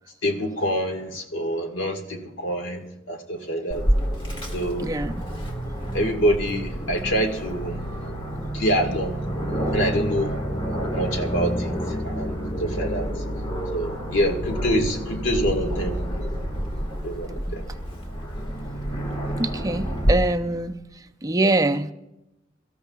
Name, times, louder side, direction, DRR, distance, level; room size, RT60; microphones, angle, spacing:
voice 1, 0.2-3.8 4.5-4.9 5.9-7.9 8.5-9.2 9.7-10.3 10.9-11.8 12.0-13.1 13.7-16.0 17.0-17.6, equal, 80° left, 3 dB, 1.7 m, -26 dB
Aircraft, 3.7-20.1, equal, 25° left, 1.8 m, -28 dB
voice 2, 4.8-5.2 17.5-17.6 19.4-20.7 21.2-21.9, right 2 dB, 20° right, 7 dB, 0.5 m, -24 dB
23.5 x 14.0 x 2.4 m, 0.95 s
head